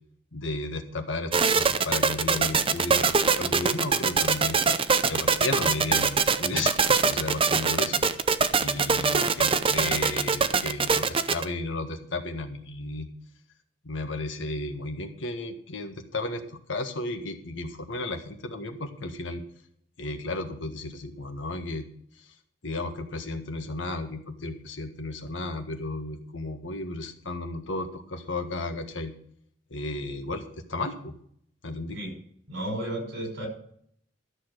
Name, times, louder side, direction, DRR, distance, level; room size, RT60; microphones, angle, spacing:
voice 1, 0.3-4.6 5.1-7.9 8.6-13.1 13.8-16.4 16.7-19.4 20.0-21.9 22.2-22.3 22.6-29.1 29.7-31.1 31.6-32.0, left 2 dB, 85° left, 6 dB, 1.6 m, -33 dB
sound 1, 1.3-11.4, right 5 dB, 30° right, 0.6 m, -23 dB
voice 2, 32.5-33.5, right 1 dB, 70° right, 2 dB, 5.6 m, -33 dB
13.0 x 6.9 x 6.7 m, 0.64 s
head